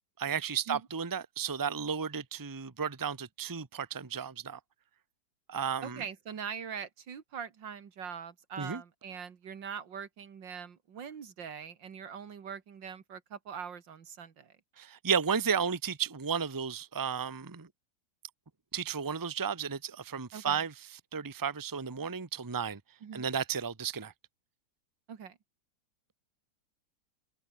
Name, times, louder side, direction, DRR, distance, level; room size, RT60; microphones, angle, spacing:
voice 1, 0.2-4.6 5.5-6.0 8.6-8.8 14.8-17.7 18.7-22.8 23.1-24.1, right 6 dB, 15° right, 0.9 m, -33 dB
voice 2, 5.8-14.6 20.3-20.6 23.0-23.3 25.1-25.4, right 7 dB, 80° right, 2.5 m, -42 dB
open air
omnidirectional pair, 2.0 m